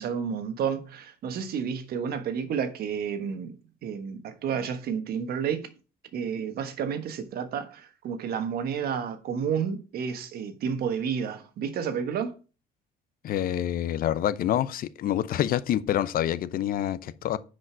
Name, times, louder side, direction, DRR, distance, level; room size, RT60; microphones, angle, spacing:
voice 1, 0.0-5.7 6.1-12.3, right 7 dB, 65° right, 1.4 m, -31 dB
voice 2, 13.2-17.4, left 11 dB, 60° left, 0.7 m, -27 dB
9.9 x 5.2 x 4.6 m
cardioid pair, 110°, 17 cm